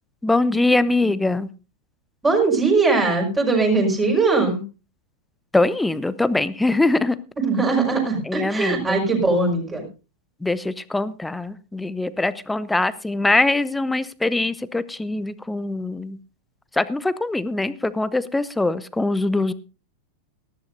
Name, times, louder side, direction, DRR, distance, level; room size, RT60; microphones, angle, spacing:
voice 1, 0.2-1.5 5.5-7.2 8.3-9.0 10.4-16.2 16.7-19.5, left 2 dB, 5° left, 17 dB, 0.7 m, -22 dB
voice 2, 2.2-4.6 7.4-9.9, right 3 dB, 15° right, 0 dB, 5.2 m, -20 dB
19.0 x 14.0 x 2.7 m, 0.32 s
figure-of-eight pair, 90°, 0 cm